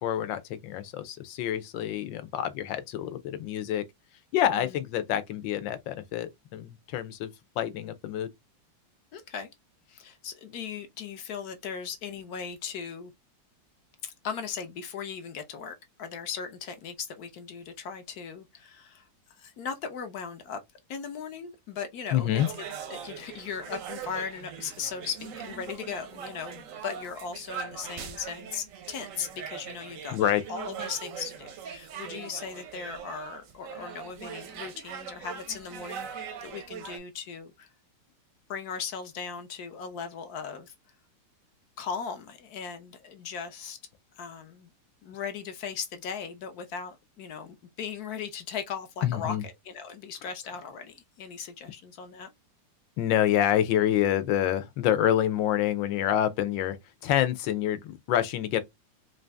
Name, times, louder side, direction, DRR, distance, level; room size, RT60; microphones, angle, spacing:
voice 1, 0.0-3.8 4.3-7.3 7.6-8.3 22.1-22.5 30.1-30.4 49.0-49.4 53.0-56.8 57.0-58.6, left 11 dB, 80° left, 1.4 m, -27 dB
voice 2, 9.1-9.5 9.9-13.1 14.0-19.1 19.4-20.6 20.9-22.6 22.9-30.2 30.5-37.7 38.5-40.7 41.8-43.8 44.2-44.7 45.0-52.3, left 6 dB, 65° left, 1.1 m, -38 dB
sound 1, 22.4-37.0, right 7 dB, 65° right, 0.8 m, -41 dB
3.9 x 2.6 x 3.3 m
omnidirectional pair, 2.1 m